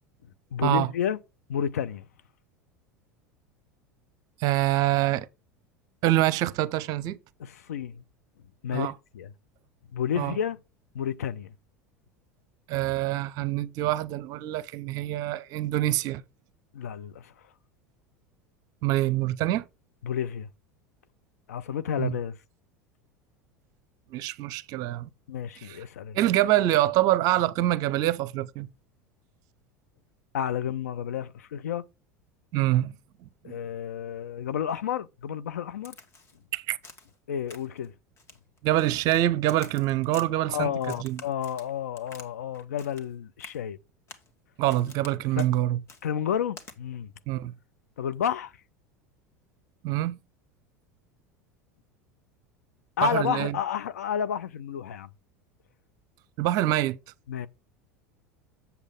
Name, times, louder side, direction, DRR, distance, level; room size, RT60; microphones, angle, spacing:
voice 1, 0.5-1.2 1.5-2.1 7.4-8.0 8.6-9.3 9.9-10.6 10.9-11.5 16.7-17.3 20.0-20.5 21.5-22.4 25.3-26.2 30.3-31.8 33.4-36.0 37.3-37.9 40.5-43.8 45.4-45.5 46.0-47.1 48.0-48.5 53.0-55.1 57.3-57.5, left 9 dB, 65° left, 0.6 m, -31 dB
voice 2, 4.4-5.3 6.0-7.2 8.7-8.9 10.2-10.4 12.7-16.2 18.8-19.6 22.0-22.1 24.1-25.1 25.6-25.8 26.1-28.7 32.5-32.9 33.5-33.6 36.5-36.8 38.6-40.7 41.0-41.2 44.6-45.8 47.3-47.5 49.8-50.2 53.0-53.6 56.4-57.0, right 15 dB, 45° right, 0.6 m, -25 dB
Crack, 35.8-36.4 36.8-37.2 37.5-37.9 38.2-39.2 39.5-40.3 40.8-42.3 42.5-43.1 43.4-43.6 44.1-44.3 44.7-45.1 45.4-45.5 45.9-46.0 46.6-46.8, left 3 dB, 30° left, 1.6 m, -48 dB
8.1 x 7.0 x 3.6 m
figure-of-eight pair, 75°, 9 cm